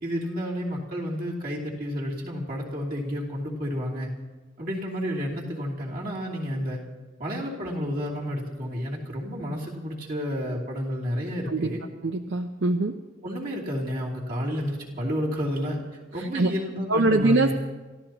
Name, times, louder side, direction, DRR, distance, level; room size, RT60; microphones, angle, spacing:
voice 1, 0.0-4.1 4.6-6.8 7.2-11.8 13.2-15.8 16.1-17.5, equal, 50° right, -3 dB, 3.0 m, -30 dB
voice 2, 12.0-13.0 16.2-16.5 16.9-17.5, right 2 dB, 70° right, 6 dB, 0.7 m, -23 dB
29.5 x 14.5 x 2.9 m, 1.3 s
head